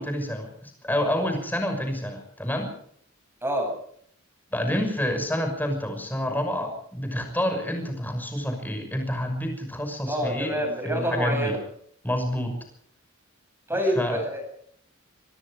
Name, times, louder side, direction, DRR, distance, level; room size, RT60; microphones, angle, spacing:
voice 1, 0.0-2.7 4.5-11.6 12.0-12.6 13.9-14.2, equal, 10° left, 5 dB, 6.2 m, -28 dB
voice 2, 3.4-3.7 10.0-11.6 13.7-14.4, equal, 10° right, 3 dB, 7.5 m, -27 dB
24.5 x 22.0 x 5.1 m, 0.63 s
head